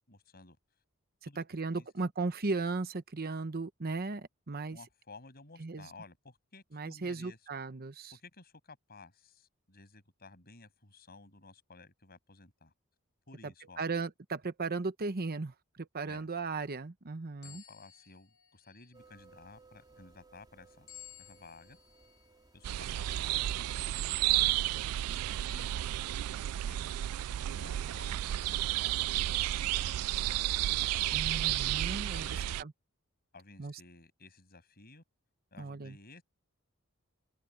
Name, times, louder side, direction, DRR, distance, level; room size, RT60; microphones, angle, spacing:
voice 1, 0.1-0.6 1.2-1.4 1.7-1.9 4.7-7.4 8.1-12.7 13.3-13.8 16.1-16.3 17.4-20.9 21.2-21.8 22.5-23.5 24.2-24.6 24.9-26.0 26.6-27.0 27.5-30.4 31.2-32.6 33.3-35.0 35.5-36.2, left 3 dB, 45° left, 7.5 m, -55 dB
voice 2, 1.2-4.8 5.6-5.9 6.7-8.1 13.8-17.6 31.1-32.3 32.6-32.7 33.6-33.8 35.6-36.0, right 3 dB, 45° right, 0.9 m, -36 dB
sound 1, 17.4-19.2 20.9-22.3 22.9-23.1 24.0-24.1, left 11 dB, 85° left, 5.6 m, -55 dB
sound 2, 18.9-23.9, right 3 dB, 20° right, 3.6 m, -62 dB
sound 3, 22.6-32.6, right 14 dB, 85° right, 0.3 m, -32 dB
open air
head